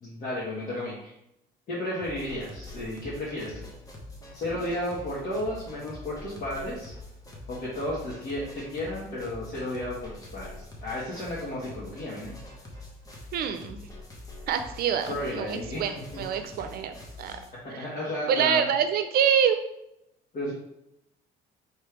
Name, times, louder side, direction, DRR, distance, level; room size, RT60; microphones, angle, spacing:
voice 1, 0.0-1.1 1.7-3.6 4.3-6.9 7.5-10.6 10.8-12.3 15.1-15.8 16.1-16.2 17.6-18.7 20.3-20.5, left 1 dB, 50° left, -8 dB, 1.5 m, -33 dB
sound 1, 2.0-17.5, left 2 dB, 20° left, 1.1 m, -44 dB
voice 2, 13.3-13.9 14.5-17.4 17.7-17.9 18.3-19.6, right 8 dB, 65° right, 8 dB, 0.6 m, -26 dB
3.3 x 3.2 x 4.6 m, 0.82 s
cardioid pair, 110°, 17 cm